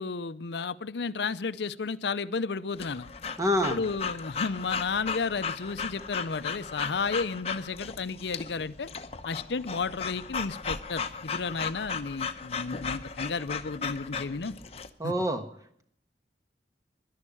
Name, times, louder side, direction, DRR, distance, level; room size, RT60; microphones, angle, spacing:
voice 1, 0.0-3.1 3.7-8.9 9.2-14.5 15.0-15.1, left 4 dB, 80° left, 15 dB, 0.6 m, -32 dB
Breathing / Dog, 2.8-14.9, left 5 dB, 35° left, 0.8 m, -36 dB
voice 2, 3.4-3.8 15.0-15.4, equal, 20° right, 7 dB, 1.4 m, -26 dB
11.5 x 11.0 x 10.0 m, 0.68 s
head